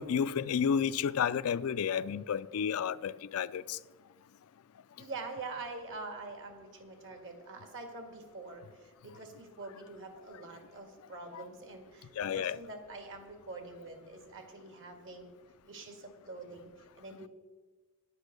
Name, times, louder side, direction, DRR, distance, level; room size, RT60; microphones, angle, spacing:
voice 1, 0.0-3.8 11.3-11.4 12.2-12.6, left 7 dB, 65° left, 0.4 m, -31 dB
voice 2, 5.0-15.3 15.7-17.3, right 3 dB, 60° right, 1.8 m, -45 dB
9.6 x 8.1 x 6.6 m
head